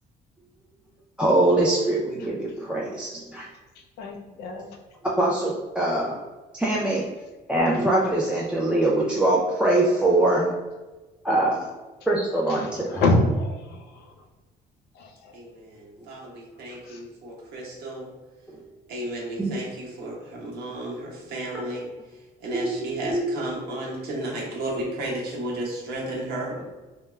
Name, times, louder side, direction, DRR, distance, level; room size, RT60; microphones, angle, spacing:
voice 1, 1.2-3.4 5.1-6.1 6.6-7.1 7.5-10.6 11.2-11.7 12.1-13.0 18.5-18.6 19.4-19.6 22.5-23.2 26.5-26.6, right 1 dB, 5° right, -5 dB, 0.3 m, -23 dB
voice 2, 4.0-4.8 12.5-14.1 14.9-15.4 16.7-17.0, left 2 dB, 75° left, 2 dB, 0.5 m, -26 dB
voice 3, 15.3-18.1 18.9-21.8 22.4-26.7, right 1 dB, 70° right, -3 dB, 0.9 m, -33 dB
2.2 x 2.1 x 3.1 m, 1.2 s
cardioid pair, 110°, 17 cm